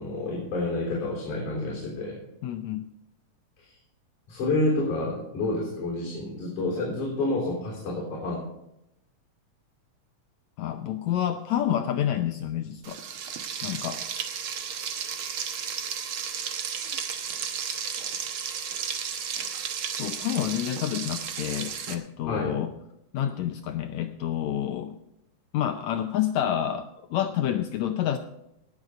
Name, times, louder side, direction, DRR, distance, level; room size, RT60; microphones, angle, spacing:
voice 1, 0.0-2.2 3.6-3.8 4.3-8.4 22.2-22.6, left 2 dB, 60° left, -4 dB, 4.9 m, -29 dB
voice 2, 2.4-2.9 10.6-13.0 13.6-14.0 20.0-22.7 23.1-25.0 25.5-28.2, left 10 dB, 80° left, 8 dB, 1.6 m, -28 dB
Frying (food), 12.8-22.0, right 7 dB, 85° right, 1.1 m, -33 dB
18.5 x 6.9 x 5.0 m, 0.85 s
omnidirectional pair, 3.9 m